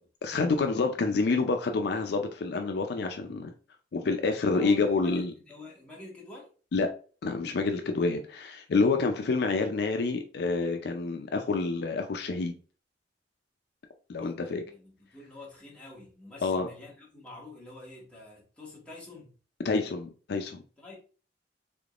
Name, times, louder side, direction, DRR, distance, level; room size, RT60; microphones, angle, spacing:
voice 1, 0.2-3.5 3.9-5.3 6.7-6.9 7.2-12.5 14.1-14.6 16.4-16.7 19.6-20.6, left 3 dB, 65° left, 5 dB, 0.4 m, -28 dB
voice 2, 4.5-6.5 14.2-19.3 20.8-20.9, left 2 dB, 5° left, -5 dB, 1.4 m, -47 dB
3.7 x 3.5 x 2.4 m, 0.38 s
head